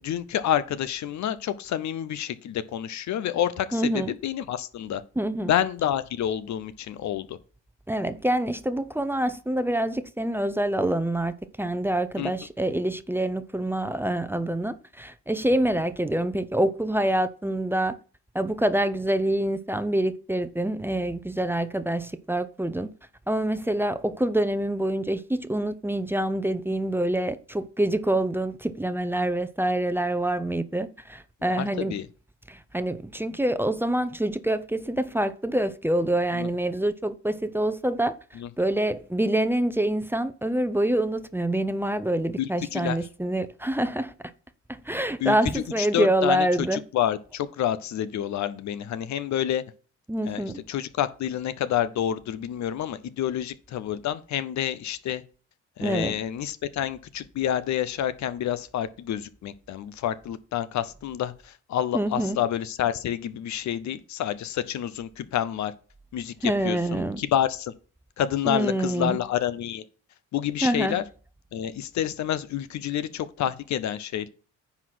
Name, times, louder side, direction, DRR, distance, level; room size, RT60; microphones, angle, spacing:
voice 1, 0.0-5.0 5.4-7.4 12.2-12.3 31.5-32.1 36.3-36.5 38.4-38.5 42.4-43.0 45.2-49.6 50.3-55.2 55.8-65.7 66.1-67.7 68.2-69.8 70.3-71.0 71.5-74.3, left 10 dB, 70° left, 0.7 m, -28 dB
voice 2, 3.7-4.1 5.2-5.5 7.9-18.0 18.3-22.9 23.3-31.9 32.5-38.1 38.6-44.1 44.7-46.8 50.1-50.6 55.8-56.2 61.9-62.4 66.4-67.2 68.4-69.2 70.6-71.0, right 1 dB, 5° right, 0.6 m, -26 dB
9.8 x 4.0 x 6.0 m
cardioid pair, 90°, 30 cm